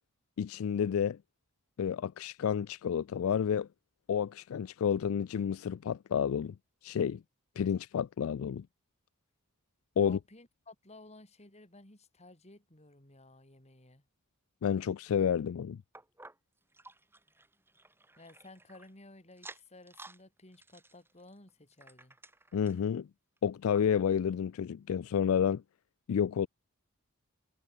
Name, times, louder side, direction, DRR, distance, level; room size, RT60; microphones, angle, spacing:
voice 1, 0.4-1.2 1.8-3.7 4.1-6.6 6.8-7.2 7.6-8.7 10.0-10.2 14.6-15.8 22.5-23.1 23.4-25.6 26.1-26.5, left 8 dB, 70° left, 0.3 m, -30 dB
voice 2, 10.0-14.0 18.2-22.2, left 2 dB, 30° left, 3.5 m, -55 dB
sound 1, 15.9-18.9 19.3-20.2 20.5-22.9 23.4-23.5 23.7-23.8 24.5-24.6, right 2 dB, 10° right, 4.7 m, -54 dB
head